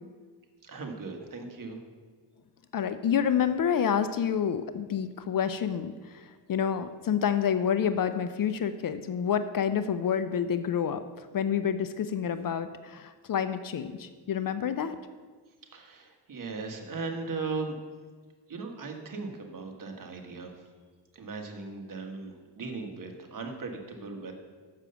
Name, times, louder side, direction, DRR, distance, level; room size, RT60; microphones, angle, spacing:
voice 1, 0.6-1.8 15.7-17.8 18.5-20.5 21.1-24.3, right 4 dB, 45° right, 3 dB, 1.4 m, -38 dB
voice 2, 2.7-11.0 11.3-15.0, left 8 dB, 50° left, 11 dB, 0.5 m, -28 dB
6.6 x 6.1 x 6.8 m, 1.5 s
cardioid pair, 85°, 45 cm